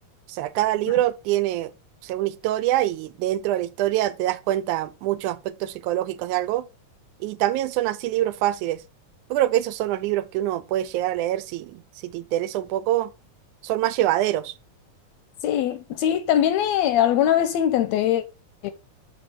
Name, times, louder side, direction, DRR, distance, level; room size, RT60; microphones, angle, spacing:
voice 1, 0.3-1.7 2.0-6.7 7.2-8.8 9.3-13.1 13.6-14.5, right 14 dB, 90° right, 2.1 m, -25 dB
voice 2, 15.4-18.2 18.6-18.7, left 10 dB, 80° left, 1.6 m, -21 dB
6.4 x 5.1 x 4.4 m
omnidirectional pair, 3.4 m